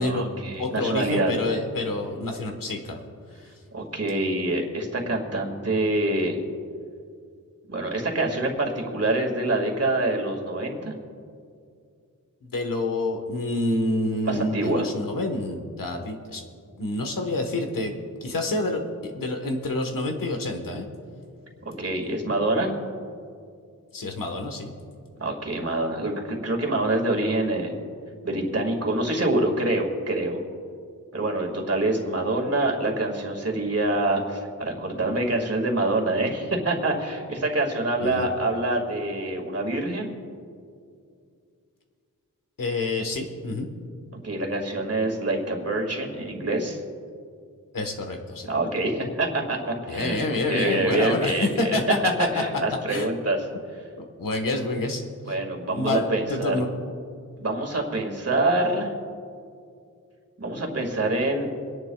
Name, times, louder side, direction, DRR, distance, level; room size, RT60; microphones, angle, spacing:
voice 1, 0.0-1.3 3.7-6.4 7.7-10.9 14.3-14.9 21.7-22.7 25.2-27.8 28.2-30.4 31.1-40.1 44.2-46.8 48.5-53.5 55.3-56.6 57.4-58.9 60.4-61.5, right 2 dB, 45° right, 1 dB, 2.1 m, -26 dB
voice 2, 0.6-3.0 12.4-16.4 16.8-17.9 18.2-20.9 23.9-24.7 38.0-38.3 42.6-43.7 47.7-48.5 49.9-52.4 52.9-53.1 54.2-55.0 55.7-56.0 56.3-56.7, left 2 dB, 85° left, 4 dB, 1.3 m, -27 dB
29.5 x 10.5 x 2.3 m, 2.3 s
wide cardioid pair, 100°, 32 cm